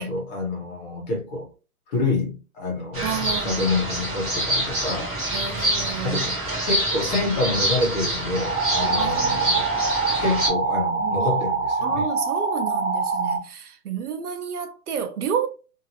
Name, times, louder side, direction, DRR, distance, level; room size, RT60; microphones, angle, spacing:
voice 1, 0.0-1.5 1.9-5.1 6.0-6.3 6.6-9.6 10.2-12.1, left 3 dB, 30° left, 1.2 m, -27 dB
sound 1, 2.9-10.5, right 1 dB, 10° right, 0.6 m, -26 dB
voice 2, 3.0-3.6 5.3-6.4 9.0-9.4 11.0-11.3 11.8-15.5, right 7 dB, 80° right, 0.8 m, -30 dB
sound 2, 8.4-13.4, right 4 dB, 45° right, 0.8 m, -24 dB
2.8 x 2.7 x 2.8 m
hypercardioid pair, 155°, 44 cm